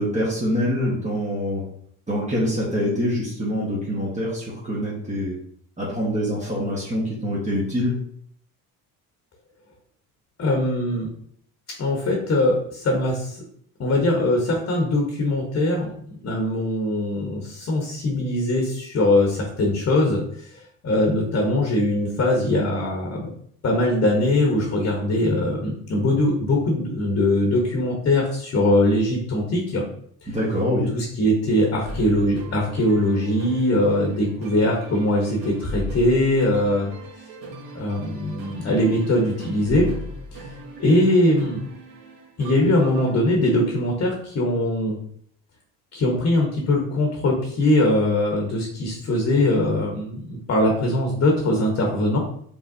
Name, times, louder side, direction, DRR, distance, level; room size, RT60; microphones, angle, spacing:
voice 1, 0.0-1.7 2.1-5.4 5.8-7.9 30.3-30.9, equal, 20° right, -7 dB, 1.3 m, -25 dB
voice 2, 10.4-11.1 11.8-13.4 13.8-23.3 23.6-29.8 30.2-30.3 30.9-36.9 37.7-39.9 40.3-40.4 40.8-41.6 42.4-45.0 45.9-52.2, left 1 dB, 40° left, 0 dB, 1.1 m, -21 dB
sound 1, 31.8-43.1, equal, 65° right, 1.8 m, -37 dB
5.3 x 3.3 x 2.7 m, 0.64 s
cardioid pair, 110°, 37 cm